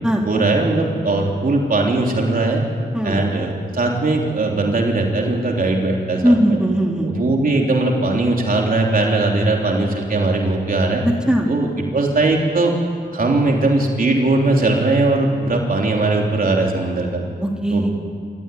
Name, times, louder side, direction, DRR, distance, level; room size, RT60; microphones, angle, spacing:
voice 1, 0.2-2.6 3.0-6.6 7.0-11.0 11.5-11.7 11.9-12.7 13.1-17.2 17.7-17.9, right 2 dB, 55° right, 0 dB, 3.5 m, -19 dB
voice 2, 6.2-7.1 11.0-11.5 17.4-17.9, equal, 5° right, 0 dB, 3.2 m, -18 dB
27.0 x 14.0 x 9.3 m, 2.1 s
cardioid pair, 70°, 18 cm